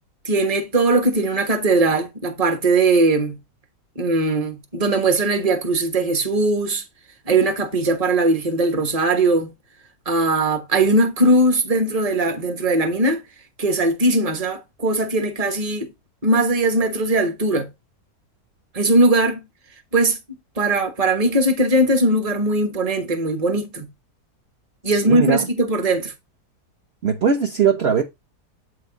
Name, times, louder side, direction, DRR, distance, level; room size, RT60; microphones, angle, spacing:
voice 1, 0.2-3.4 4.0-6.8 7.3-9.5 10.1-13.2 13.6-15.9 16.2-17.7 18.7-19.4 19.9-20.2 20.6-23.9 24.8-26.1, right 2 dB, 25° right, 1.2 m, -19 dB
voice 2, 24.9-25.4 27.0-28.0, right 7 dB, 45° right, 1.0 m, -20 dB
8.2 x 4.8 x 3.9 m
omnidirectional pair, 1.8 m